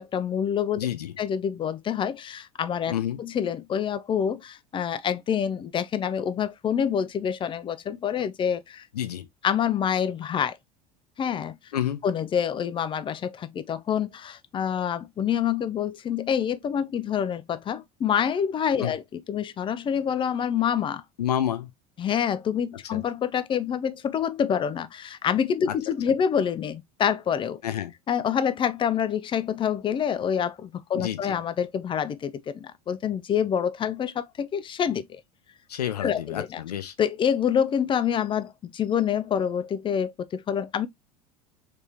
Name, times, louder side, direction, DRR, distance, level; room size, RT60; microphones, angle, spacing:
voice 1, 0.0-0.9 1.2-8.9 9.4-10.6 11.2-11.6 12.0-21.0 22.0-27.6 28.1-35.2 36.0-36.6 37.0-40.9, left 8 dB, 25° left, 0.4 m, -27 dB
voice 2, 0.8-1.1 2.9-3.2 8.9-9.3 11.7-12.0 18.8-18.9 21.2-21.7 22.9-23.0 25.7-25.8 27.6-27.9 30.9-31.4 35.7-36.9, left 11 dB, 80° left, 0.6 m, -29 dB
3.4 x 3.4 x 2.7 m
figure-of-eight pair, 75°, 20 cm